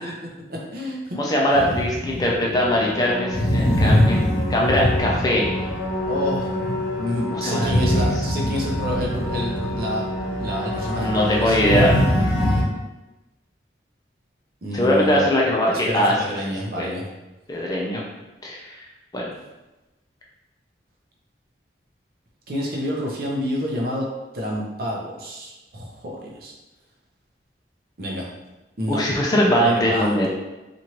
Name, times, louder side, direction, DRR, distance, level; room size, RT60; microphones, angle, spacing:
voice 1, 0.0-1.2 6.1-6.5 7.0-10.1 10.4-11.7 14.6-15.3 15.7-17.0 22.5-24.1 24.3-26.5 28.0-28.3 28.8-29.0 29.6-30.3, equal, 50° right, -2 dB, 0.6 m, -29 dB
voice 2, 1.1-5.5 7.3-8.1 11.0-11.9 14.7-16.4 16.8-16.9 17.5-18.0 18.4-18.8 19.1-19.2 28.9-30.3, equal, 20° left, -3 dB, 0.4 m, -21 dB
sound 1, 1.5-12.6, left 1 dB, 90° left, 0.8 m, -23 dB
3.0 x 2.5 x 2.9 m, 1.0 s
head